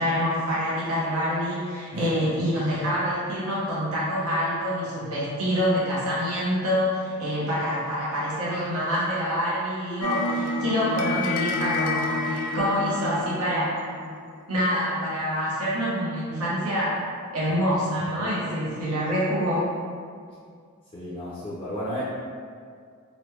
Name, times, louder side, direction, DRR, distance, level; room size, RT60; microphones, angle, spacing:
voice 1, 0.0-13.9 14.5-17.0 17.3-19.7, equal, 85° right, -8 dB, 0.9 m, -26 dB
sound 1, 10.0-14.3, left 2 dB, 85° left, 0.4 m, -29 dB
voice 2, 20.9-22.0, equal, 25° left, -10 dB, 0.4 m, -33 dB
3.0 x 2.2 x 3.0 m, 2.1 s
head